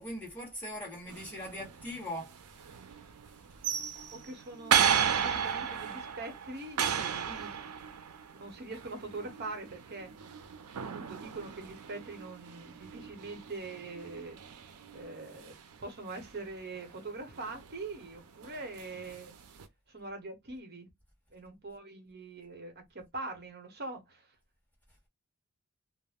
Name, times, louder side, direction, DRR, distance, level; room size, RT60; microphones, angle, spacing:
voice 1, 0.0-2.3, left 1 dB, 10° left, 1.2 m, -40 dB
sound 1, 1.1-19.7, right 8 dB, 85° right, 0.5 m, -35 dB
voice 2, 4.1-7.5 8.3-10.1 10.9-19.3 19.9-20.9 21.3-24.3, right 3 dB, 50° right, 0.9 m, -43 dB
2.4 x 2.1 x 3.4 m
head